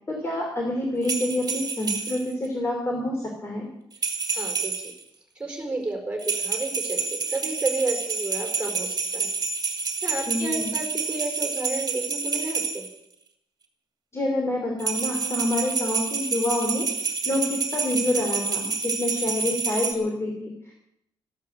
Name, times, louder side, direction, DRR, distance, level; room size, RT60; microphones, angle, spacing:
voice 1, 0.1-3.6 10.3-10.7 14.1-16.8 17.2-20.7, left 1 dB, 30° left, 1 dB, 2.9 m, -27 dB
sound 1, 1.0-2.3 3.9-5.0 6.2-12.9 14.8-19.9, right 4 dB, 45° right, 2.3 m, -28 dB
voice 2, 4.3-4.9 5.3-9.3 9.7-12.8, right 2 dB, 15° right, 2 dB, 4.7 m, -32 dB
13.5 x 12.0 x 7.9 m, 0.76 s
wide cardioid pair, 155°, 9 cm